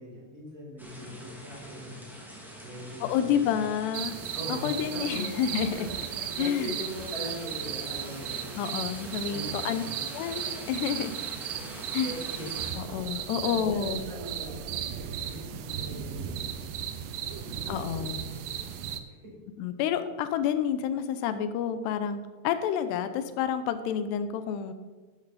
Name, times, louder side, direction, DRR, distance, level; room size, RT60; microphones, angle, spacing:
voice 1, 0.0-1.9 2.6-3.6 4.3-5.3 5.7-6.0 6.3-8.5 9.2-10.0 11.6-11.7 12.0-12.5 13.4-14.8 15.1-16.7 17.3-17.9 18.1-18.6 19.2-19.3, equal, 30° right, -5 dB, 5.2 m, -41 dB
sound 1, 0.8-12.7, equal, ahead, 1.4 m, -45 dB
voice 2, 3.0-4.2 4.5-5.9 6.4-6.7 8.5-9.8 10.1-11.1 11.9-12.1 12.8-14.0 17.7-18.2 19.6-24.7, left 8 dB, 90° left, 10 dB, 2.9 m, -29 dB
sound 2, 3.9-19.0, right 9 dB, 75° right, 2.2 m, -36 dB
12.0 x 11.5 x 4.2 m, 1.4 s
omnidirectional pair, 4.7 m